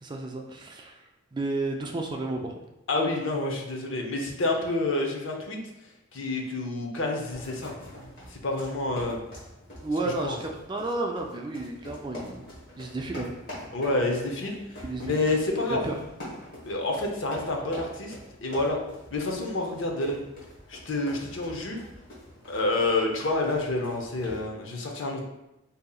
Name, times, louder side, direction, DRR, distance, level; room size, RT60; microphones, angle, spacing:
voice 1, 0.0-2.6 9.8-12.5 12.8-13.3 14.8-15.2 15.7-16.0, right 2 dB, 20° right, 2 dB, 0.3 m, -32 dB
voice 2, 2.9-5.6 6.1-7.7 8.3-9.2 10.2-10.3 13.7-14.6 15.1-15.8 16.6-18.1 18.4-18.8 19.1-20.2 20.7-21.8 22.5-25.2, left 2 dB, 65° left, 1 dB, 0.6 m, -28 dB
sound 1, 7.3-24.5, left 1 dB, 45° left, 1.2 m, -45 dB
5.1 x 2.7 x 2.3 m, 0.91 s
head